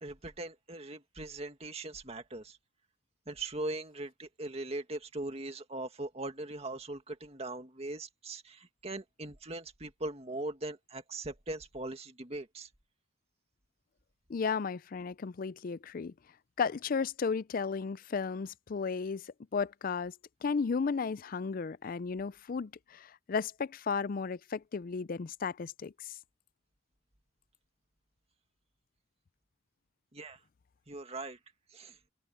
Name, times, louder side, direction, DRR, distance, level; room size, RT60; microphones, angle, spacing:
voice 1, 0.0-2.6 3.3-12.7 30.1-30.4 30.9-31.4 31.7-32.0, right 2 dB, 35° right, 2.1 m, -40 dB
voice 2, 14.3-16.1 16.6-20.1 20.4-26.1, left 5 dB, 45° left, 0.4 m, -34 dB
open air
head